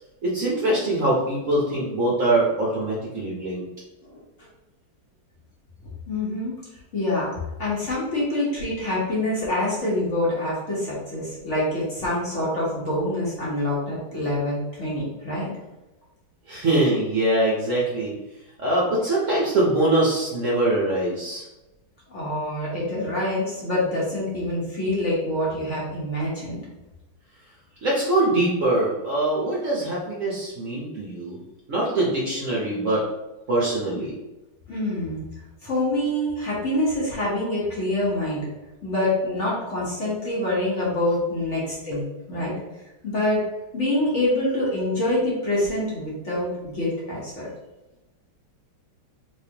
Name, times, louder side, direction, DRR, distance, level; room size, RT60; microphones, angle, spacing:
voice 1, 0.2-3.6 16.5-18.1 18.6-21.4 27.8-31.4 31.7-33.0 33.5-34.1, right 1 dB, 55° right, -5 dB, 1.0 m, -23 dB
voice 2, 6.1-6.5 6.9-15.5 22.1-26.6 34.7-35.3 35.6-38.4 38.8-42.5 43.0-43.4 43.7-47.5, left 1 dB, 45° left, -7 dB, 1.2 m, -26 dB
3.4 x 3.4 x 2.8 m, 1.0 s
omnidirectional pair, 2.0 m